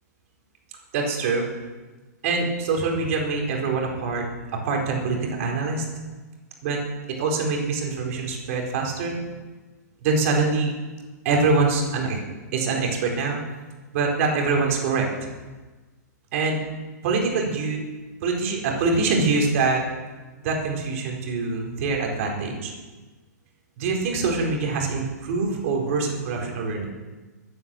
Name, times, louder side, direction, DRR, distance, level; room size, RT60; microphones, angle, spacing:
voice 1, 0.9-1.5 2.2-4.3 4.5-5.9 6.6-6.8 7.1-9.2 10.0-10.7 11.2-12.2 12.5-13.4 13.9-15.1 16.3-16.6 17.0-17.8 18.2-19.8 20.4-22.7 23.8-26.9, right 4 dB, 50° right, 0 dB, 4.4 m, -24 dB
15.0 x 9.7 x 7.0 m, 1.3 s
hypercardioid pair, 130°, 10 cm